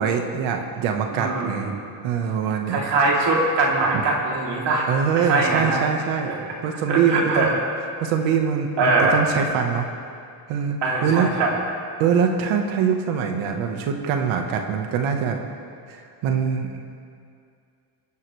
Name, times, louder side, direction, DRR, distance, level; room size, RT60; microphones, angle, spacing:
voice 1, 0.0-2.8 4.9-6.3 6.6-7.5 8.0-9.9 10.5-11.3 12.0-15.4 15.9-16.8, right 7 dB, 90° right, 4 dB, 1.5 m, -23 dB
voice 2, 1.1-1.8 2.7-4.9 5.2-5.8 6.3-6.4 6.9-7.5 8.8-9.2 10.8-11.5, right 3 dB, 60° right, -3 dB, 3.3 m, -22 dB
23.5 x 11.0 x 3.3 m, 2.4 s
cardioid pair, 115°, 47 cm